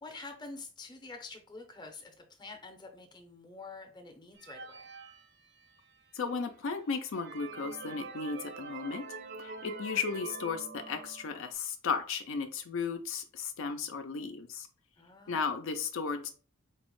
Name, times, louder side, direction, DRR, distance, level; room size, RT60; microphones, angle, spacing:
voice 1, 0.0-4.8 15.0-15.6, left 3 dB, 20° left, 4 dB, 0.6 m, -47 dB
sound 1, 4.4-6.0 6.5-6.6 7.0-11.5, right 4 dB, 50° right, 0.4 m, -45 dB
voice 2, 6.1-9.0 9.4-14.7 15.3-16.3, left 5 dB, 65° left, 7 dB, 0.4 m, -35 dB
4.5 x 2.1 x 3.0 m, 0.39 s
head